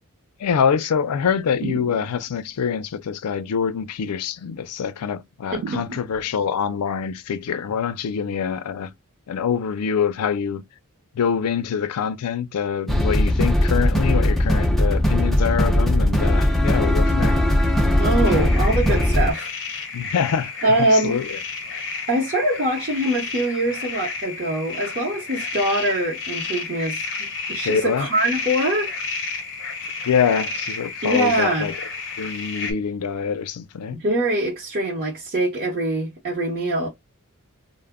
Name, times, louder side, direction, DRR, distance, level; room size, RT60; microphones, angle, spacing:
voice 1, 0.4-8.9 9.3-10.6 11.1-17.4 19.9-21.4 27.6-28.1 30.0-31.7 32.2-34.0, left 7 dB, 85° left, 0.4 m, -25 dB
sound 1, 1.6-2.5 5.6-6.5, right 7 dB, 85° right, 0.3 m, -34 dB
sound 2, 12.9-19.3, left 1 dB, ahead, 0.3 m, -19 dB
voice 2, 18.0-19.6 20.6-21.2 22.1-27.1 27.5-28.9 31.0-31.7 33.9-36.9, right 1 dB, 45° right, 0.8 m, -23 dB
sound 3, 18.2-32.7, left 4 dB, 55° left, 0.7 m, -31 dB
2.1 x 2.0 x 3.4 m
head